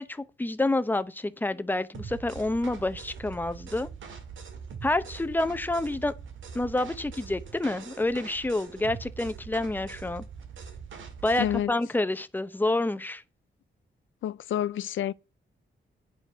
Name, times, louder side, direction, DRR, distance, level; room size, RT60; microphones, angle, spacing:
voice 1, 0.0-3.9 4.8-6.1 6.5-10.2 11.2-13.2, left 2 dB, 10° left, 0.7 m, -28 dB
sound 1, 1.9-11.6, right 6 dB, 85° right, 2.1 m, -43 dB
voice 2, 11.4-11.7 14.2-15.1, left 11 dB, 90° left, 0.5 m, -28 dB
9.9 x 8.5 x 5.4 m
wide cardioid pair, 140°, 20 cm